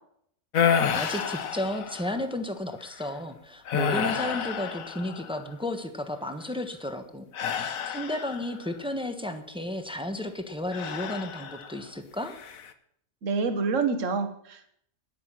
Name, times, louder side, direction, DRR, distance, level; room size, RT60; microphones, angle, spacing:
sound 1, 0.5-2.3 2.8-3.1 3.7-5.5 7.3-8.7 10.7-11.8 12.3-12.7, left 7 dB, 90° left, 1.4 m, -29 dB
voice 1, 0.9-7.3 7.5-12.3, left 1 dB, 5° right, 7 dB, 1.2 m, -33 dB
voice 2, 13.2-14.7, right 4 dB, 65° right, 8 dB, 1.6 m, -27 dB
10.5 x 10.0 x 7.6 m, 0.69 s
omnidirectional pair, 1.4 m